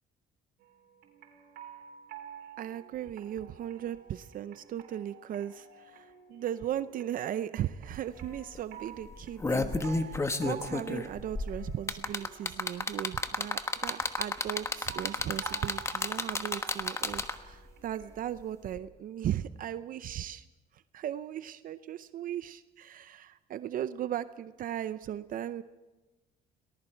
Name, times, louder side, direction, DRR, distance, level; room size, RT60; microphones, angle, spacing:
sound 1, 0.6-18.2, right 9 dB, 80° right, 4.4 m, -51 dB
voice 1, 2.6-20.4 20.7-25.6, right 11 dB, 55° right, 13 dB, 0.6 m, -37 dB
sound 2, 7.9-8.0 8.3-8.6 9.1-17.5 18.7-18.8, left 3 dB, 15° left, 1.2 m, -31 dB
29.5 x 19.5 x 4.6 m, 1.1 s
cardioid pair, 110°, 17 cm